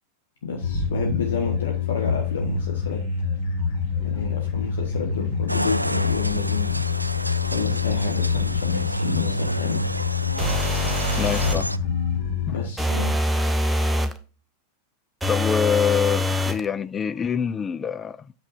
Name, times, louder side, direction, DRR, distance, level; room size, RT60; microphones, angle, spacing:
voice 1, 0.4-3.0 4.0-6.8 7.4-9.9 12.5-13.2, left 4 dB, 65° left, 1.5 m, -30 dB
sound 1, 0.6-12.7, left 6 dB, 45° left, 4.2 m, -26 dB
sound 2, 5.5-11.8, right 1 dB, 85° right, 0.4 m, -31 dB
sound 3, 10.4-11.7 12.8-14.2 15.2-16.6, left 1 dB, 5° right, 0.8 m, -24 dB
voice 2, 11.2-11.7 12.5-12.6 15.3-18.3, left 7 dB, 20° left, 0.3 m, -25 dB
8.6 x 6.9 x 2.6 m
figure-of-eight pair, 90°, 0 cm